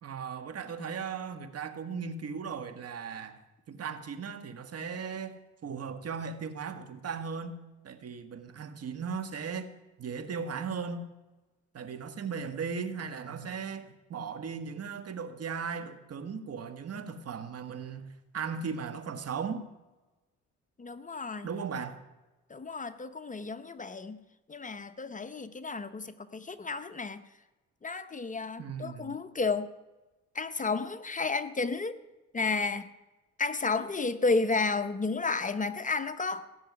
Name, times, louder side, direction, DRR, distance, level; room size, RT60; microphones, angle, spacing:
voice 1, 0.0-3.4 3.7-5.4 5.6-7.6 7.8-9.7 10.0-11.1 11.7-19.7 21.4-22.0 28.6-29.2, right 6 dB, 55° right, 1.7 m, -37 dB
voice 2, 20.8-21.5 22.5-24.2 24.5-27.2 27.8-29.7 30.3-32.0 32.3-32.9 33.4-36.5, left 4 dB, 25° left, 0.8 m, -32 dB
17.0 x 6.8 x 9.6 m
cardioid pair, 90°, 30 cm